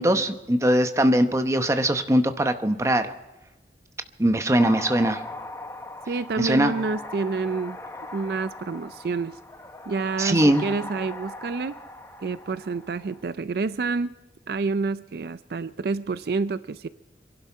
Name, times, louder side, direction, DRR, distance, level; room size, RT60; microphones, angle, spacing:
voice 1, 0.0-3.1 4.2-5.2 6.4-6.7 10.2-10.6, right 1 dB, 15° right, 8 dB, 0.8 m, -21 dB
sound 1, 4.6-13.2, left 2 dB, 15° left, 1.1 m, -39 dB
voice 2, 6.1-7.8 8.1-9.4 9.9-11.7 12.2-14.1 14.5-16.9, right 4 dB, 60° right, 14 dB, 0.4 m, -28 dB
25.5 x 12.0 x 4.6 m, 1.1 s
head